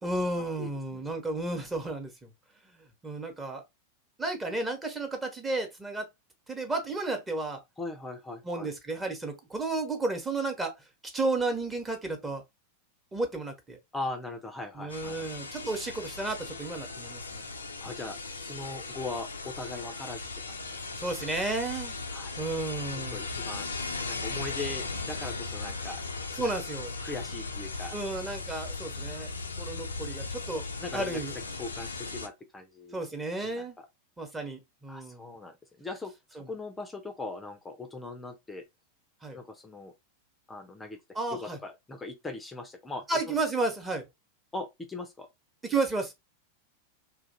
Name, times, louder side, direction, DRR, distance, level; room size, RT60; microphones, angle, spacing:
voice 1, 0.0-2.3 2.6-3.6 4.2-6.1 6.5-7.6 8.4-10.7 11.1-12.4 13.1-13.8 14.8-17.5 21.0-22.0 22.4-23.2 26.4-26.9 27.9-29.3 29.6-30.6 30.9-31.3 32.9-33.8 34.2-35.3 36.4-36.5 39.2-39.4 41.1-41.6 43.1-44.1 45.6-46.1, right 2 dB, 15° right, 1.0 m, -32 dB
voice 2, 0.6-1.0 7.8-8.7 13.9-15.3 17.8-20.8 22.1-22.4 22.9-23.7 24.1-26.0 26.3-26.4 27.0-27.9 30.8-31.2 31.6-33.1 33.4-33.9 34.9-36.1 36.5-38.6 39.3-39.9 40.5-43.3 44.5-45.3, left 3 dB, 10° left, 0.6 m, -40 dB
sound 1, 14.9-32.3, left 3 dB, 75° left, 0.5 m, -37 dB
2.8 x 2.5 x 4.0 m
figure-of-eight pair, 90°, 0 cm